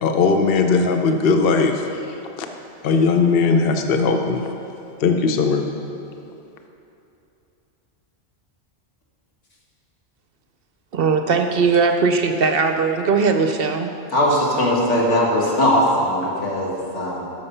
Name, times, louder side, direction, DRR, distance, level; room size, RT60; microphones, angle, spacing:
voice 1, 0.0-2.5 2.8-4.5 5.0-5.6, left 4 dB, 55° left, 5 dB, 0.9 m, -19 dB
voice 2, 10.9-13.9, right 5 dB, 60° right, 6 dB, 0.7 m, -19 dB
voice 3, 14.1-17.2, left 1 dB, 75° left, -4 dB, 2.2 m, -19 dB
12.5 x 6.5 x 5.5 m, 2.8 s
omnidirectional pair, 1.2 m